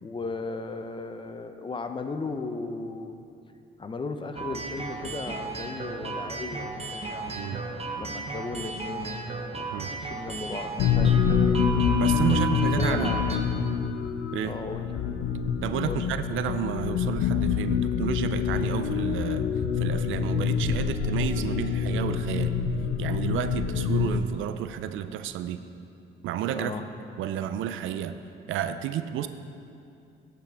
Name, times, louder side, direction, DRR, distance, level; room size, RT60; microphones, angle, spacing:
voice 1, 0.0-3.1 3.8-7.3 7.9-9.2 9.9-11.2 12.3-12.4 12.8-13.2 14.4-14.9 15.8-16.1 26.5-26.8, left 3 dB, 25° left, 7 dB, 0.6 m, -35 dB
sound 1, 4.4-13.4, right 3 dB, 30° right, 0.8 m, -34 dB
sound 2, 10.8-24.2, left 7 dB, 90° left, 0.4 m, -26 dB
voice 2, 12.0-13.1 14.3-14.5 15.6-19.5 19.8-22.6 23.0-25.6 26.2-26.8 27.2-28.2 28.5-29.3, right 10 dB, 80° right, 11 dB, 0.4 m, -31 dB
13.0 x 5.9 x 3.5 m, 2.6 s
cardioid pair, 90°, 20 cm